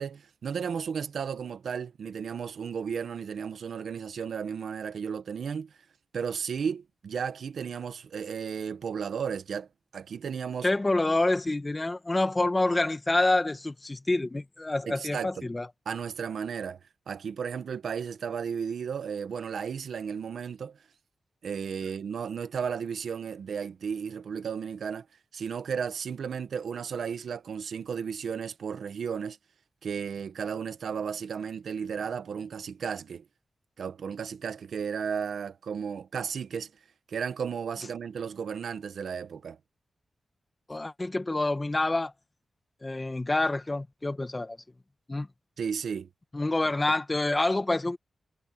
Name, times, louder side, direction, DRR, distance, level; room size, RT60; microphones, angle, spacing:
voice 1, 0.0-5.7 6.1-9.7 9.9-10.7 14.9-15.5 15.9-16.8 17.1-20.8 21.4-25.1 25.3-29.4 29.8-33.3 33.8-36.7 37.1-39.6 45.6-46.1, right 7 dB, 80° right, 1.2 m, -34 dB
voice 2, 10.6-15.7 40.7-42.1 42.8-44.6 45.1-45.3 46.3-48.0, left 2 dB, 25° left, 1.8 m, -27 dB
wide cardioid pair, 90°, 0 cm